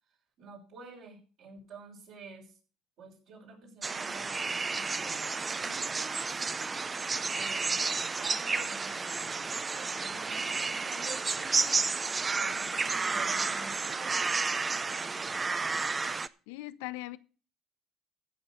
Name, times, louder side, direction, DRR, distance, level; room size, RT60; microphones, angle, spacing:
voice 1, 0.4-2.5 3.0-5.3 5.6-6.5 7.3-7.8 8.1-11.8 12.4-14.3, right 4 dB, 65° right, 5.7 m, -49 dB
sound 1, 3.8-16.3, right 4 dB, 30° right, 0.6 m, -31 dB
voice 2, 16.5-17.2, left 18 dB, 80° left, 0.6 m, -39 dB
15.0 x 5.6 x 6.8 m
hypercardioid pair, 70°, 0 cm